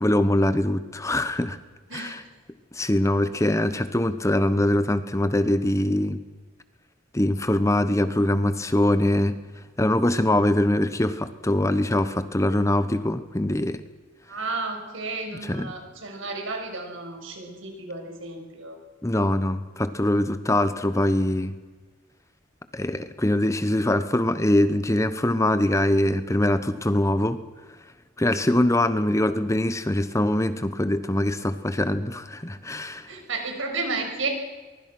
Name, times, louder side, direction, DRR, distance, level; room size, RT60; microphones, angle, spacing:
voice 1, 0.0-1.6 1.9-2.2 2.7-6.2 7.1-9.4 9.8-13.8 15.4-15.8 19.0-21.5 22.7-27.4 28.2-33.1, left 1 dB, 15° left, 12 dB, 0.9 m, -23 dB
voice 2, 1.9-2.3 14.2-18.8 33.1-34.3, right 3 dB, 70° right, 3 dB, 6.2 m, -32 dB
24.0 x 23.0 x 6.1 m, 1.3 s
head